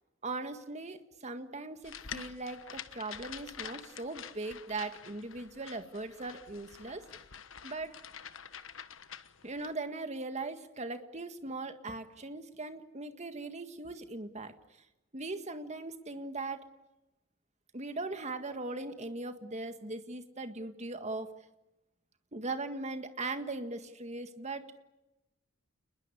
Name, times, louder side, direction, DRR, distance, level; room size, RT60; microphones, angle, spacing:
voice 1, 0.2-7.0 7.6-8.0 9.4-14.5 15.1-16.7 17.7-21.3 22.3-24.8, right 2 dB, 35° right, 8 dB, 1.8 m, -39 dB
sound 1, 1.8-9.7, left 8 dB, 70° left, 1.3 m, -47 dB
29.0 x 21.0 x 8.5 m, 0.97 s
head